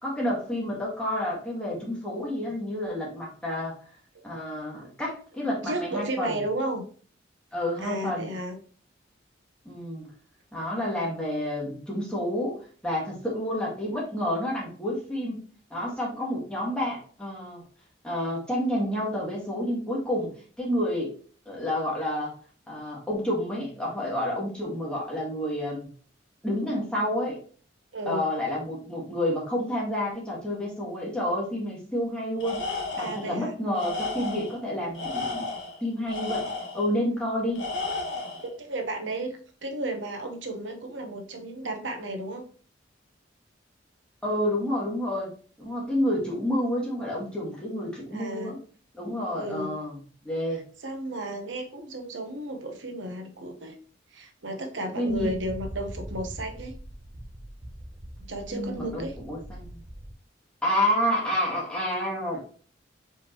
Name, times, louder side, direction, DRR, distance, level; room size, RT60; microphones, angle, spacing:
voice 1, 0.0-3.7 4.2-6.3 7.5-8.3 9.6-10.1 10.5-12.5 12.8-15.4 15.7-17.6 18.0-20.3 20.6-21.1 21.4-22.3 22.7-25.9 26.4-27.4 28.0-32.6 33.0-35.5 35.8-36.5 36.7-37.7 44.2-45.3 45.6-48.6 48.9-50.0 50.2-50.6 55.0-55.3 58.5-59.8 60.6-62.4, left 1 dB, 5° left, -4 dB, 1.7 m, -29 dB
voice 2, 5.6-6.8 7.8-8.6 27.9-28.3 33.0-33.6 38.3-42.4 48.1-48.5 49.3-49.8 50.5-53.8 54.1-56.7 58.3-59.2, right 1 dB, 75° right, 6 dB, 0.9 m, -33 dB
Tools, 32.4-33.3 33.7-34.6 34.9-36.9 37.5-38.5, left 3 dB, 75° left, 1.2 m, -33 dB
sound 1, 55.1-60.1, right 1 dB, 20° right, 0.5 m, -41 dB
4.5 x 3.6 x 3.0 m, 0.42 s
head